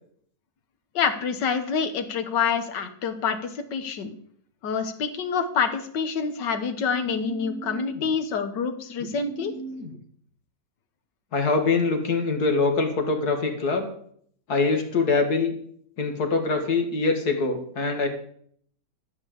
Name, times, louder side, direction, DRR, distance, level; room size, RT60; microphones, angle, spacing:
voice 1, 1.0-4.2 4.6-9.5, left 6 dB, 85° left, 8 dB, 1.8 m, -27 dB
voice 2, 7.1-8.0 9.0-9.9 11.3-13.9 14.5-15.5 16.0-18.1, left 3 dB, 60° left, 4 dB, 2.2 m, -25 dB
13.0 x 5.0 x 8.5 m, 0.62 s
omnidirectional pair, 1.8 m